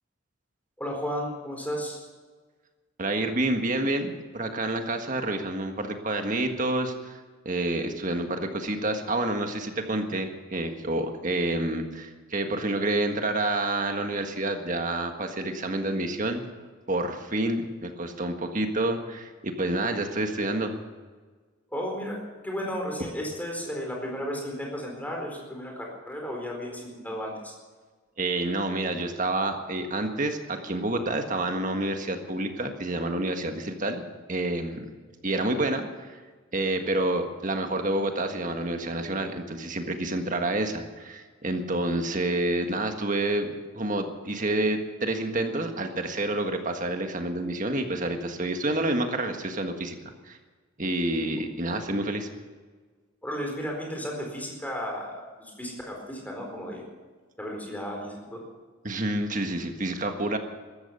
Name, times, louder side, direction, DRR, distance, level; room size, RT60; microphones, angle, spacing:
voice 1, 0.8-2.0 21.7-22.2 22.4-27.5 53.2-56.8 57.4-58.4, equal, 10° left, 0 dB, 4.4 m, -34 dB
voice 2, 3.0-7.2 7.4-16.4 16.9-20.8 28.2-34.0 34.3-34.8 35.2-36.2 36.5-49.9 50.2-50.4 50.8-52.3 58.8-60.4, right 2 dB, 40° right, 5 dB, 1.6 m, -28 dB
14.5 x 13.5 x 7.0 m, 1.4 s
head